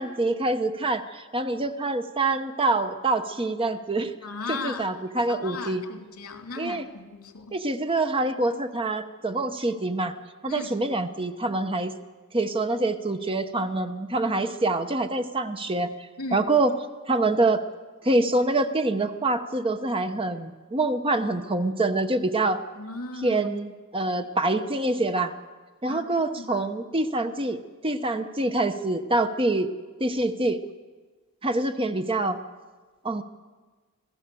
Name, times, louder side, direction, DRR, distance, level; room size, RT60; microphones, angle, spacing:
voice 1, 0.0-4.1 4.5-5.8 6.6-6.9 7.5-10.1 10.4-11.9 12.3-16.8 17.1-17.7 18.0-22.6 23.1-25.3 25.8-29.7 30.0-30.6 31.4-32.4 33.0-33.2, right 2 dB, 25° right, 0.9 m, -26 dB
voice 2, 4.2-4.9 5.4-7.6 10.5-10.7 16.2-16.5 22.8-23.5 25.9-26.5, left 3 dB, 75° left, 2.8 m, -36 dB
26.0 x 17.0 x 7.0 m
head